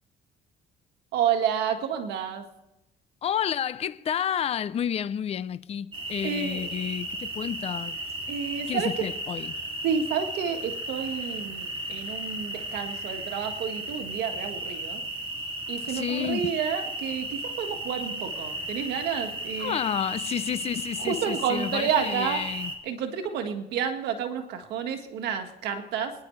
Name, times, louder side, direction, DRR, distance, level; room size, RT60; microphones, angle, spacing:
voice 1, 1.1-2.4 6.2-6.6 8.3-9.1 9.8-15.0 15.7-19.8 21.0-22.4 22.9-26.1, right 7 dB, 80° right, 1.8 m, -30 dB
voice 2, 3.2-7.9 8.7-9.6 15.9-16.5 19.6-22.7, left 9 dB, 35° left, 0.5 m, -30 dB
sound 1, 5.9-22.8, right 1 dB, 30° right, 2.7 m, -35 dB
24.0 x 10.5 x 3.3 m
cardioid pair, 110°, 17 cm